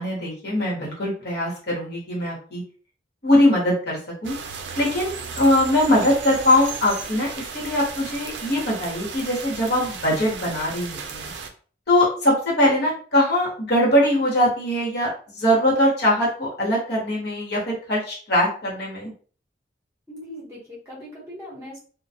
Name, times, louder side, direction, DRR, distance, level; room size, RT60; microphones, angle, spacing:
voice 1, 0.0-2.6 3.2-4.3 4.8-11.3 11.9-19.1, left 1 dB, 60° left, -4 dB, 1.1 m, -22 dB
sound 1, 4.2-11.5, right 5 dB, 75° right, 0.4 m, -35 dB
voice 2, 20.1-21.8, left 1 dB, 15° right, -6 dB, 0.9 m, -39 dB
2.2 x 2.2 x 2.7 m, 0.42 s
head